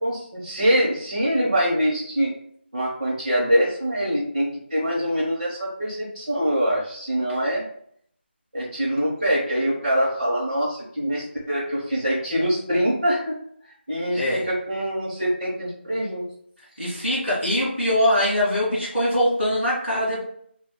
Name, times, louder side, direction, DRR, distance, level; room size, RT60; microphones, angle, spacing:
voice 1, 0.0-2.3 2.7-7.6 8.5-13.3 13.9-16.2, equal, 50° right, -6 dB, 0.8 m, -24 dB
voice 2, 14.1-14.4 16.8-20.2, equal, ahead, -24 dB, 0.4 m, -22 dB
2.3 x 2.2 x 3.5 m, 0.65 s
figure-of-eight pair, 180°, 6 cm